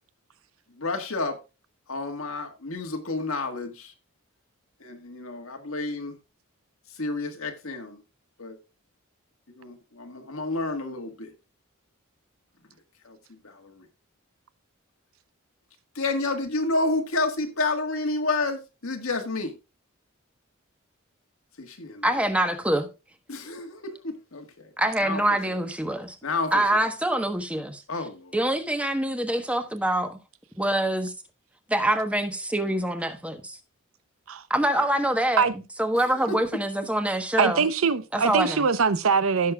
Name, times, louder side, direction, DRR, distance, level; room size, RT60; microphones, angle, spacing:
voice 1, 0.8-1.4 1.9-3.9 4.8-6.2 6.9-8.0 8.4-8.6 9.6-11.3 13.0-13.2 13.4-13.8 16.0-19.5 21.6-22.1 23.3-24.7 25.0-25.4 26.2-26.6 27.9-28.3 34.7-34.9 36.1-36.4, left 2 dB, 75° left, 1.7 m, -30 dB
voice 2, 22.0-22.9 24.8-26.2 26.5-27.8 28.3-30.2 30.6-31.1 31.7-33.6 34.5-35.5 35.8-37.6 38.1-38.7, right 1 dB, 5° right, 1.2 m, -25 dB
voice 3, 37.4-39.5, right 5 dB, 70° right, 0.7 m, -22 dB
16.0 x 6.5 x 2.3 m
head